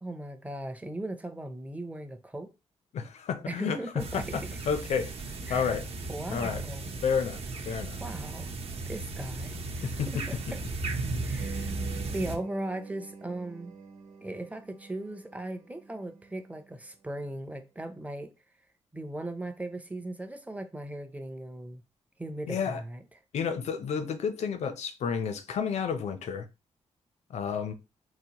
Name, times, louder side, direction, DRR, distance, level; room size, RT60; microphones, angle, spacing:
voice 1, 0.0-2.5 3.5-4.6 5.5-5.8 6.1-6.9 8.0-8.5 8.9-10.0 10.3-10.6 11.2-11.7 12.1-13.7 14.2-18.3 18.9-21.8 22.2-23.0, right 1 dB, 10° right, 0.5 m, -38 dB
voice 2, 2.9-5.1 5.5-5.8 6.3-6.6 7.0-7.4 7.6-8.0 9.8-10.2 22.5-22.8 23.3-26.5 27.3-27.7, left 6 dB, 75° left, 0.6 m, -31 dB
sound 1, 4.0-12.4, right 3 dB, 60° right, 0.8 m, -36 dB
sound 2, 11.4-16.9, right 5 dB, 90° right, 1.1 m, -46 dB
3.9 x 2.4 x 2.9 m
cardioid pair, 90°, 12 cm